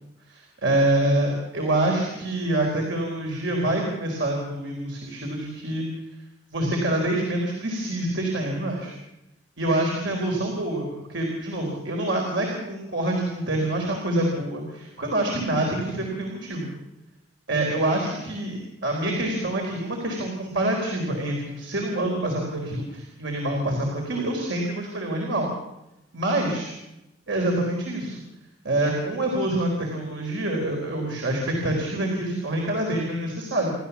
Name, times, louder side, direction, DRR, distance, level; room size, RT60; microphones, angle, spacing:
voice 1, 0.3-5.8 6.5-8.9 9.6-16.8 17.5-25.5 26.1-26.8 27.3-28.2 28.6-33.7, right 1 dB, 65° right, 0 dB, 4.3 m, -26 dB
28.5 x 13.0 x 7.2 m, 0.92 s
head